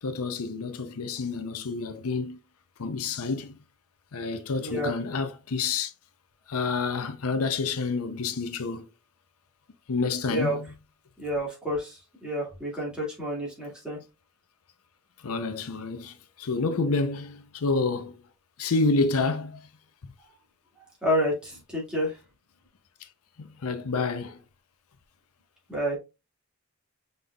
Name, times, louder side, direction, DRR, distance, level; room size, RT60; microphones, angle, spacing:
voice 1, 0.0-2.4 2.8-3.6 4.1-5.9 6.5-8.9 9.9-10.7 15.2-18.1 18.6-19.6 23.0-23.1 23.4-24.4, left 4 dB, 80° left, 0.6 m, -29 dB
voice 2, 4.6-4.9 10.3-10.6 11.2-14.0 21.0-22.2 25.7-26.0, equal, 5° right, 2.1 m, -29 dB
5.3 x 4.0 x 2.3 m
head